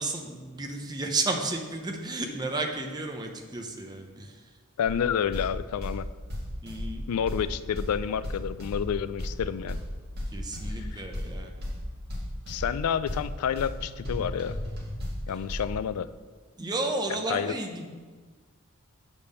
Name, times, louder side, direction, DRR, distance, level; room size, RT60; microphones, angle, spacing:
voice 1, 0.0-4.5 6.6-7.0 10.3-11.5 16.6-17.9, right 2 dB, 20° right, 2 dB, 0.7 m, -32 dB
voice 2, 4.8-6.1 7.1-9.8 10.9-11.0 12.5-14.6 15.3-16.1 17.3-17.5, left 8 dB, 80° left, 15 dB, 0.3 m, -29 dB
sound 1, 4.8-15.7, left 1 dB, 45° right, 2.0 m, -36 dB
8.3 x 3.6 x 6.7 m, 1.5 s
head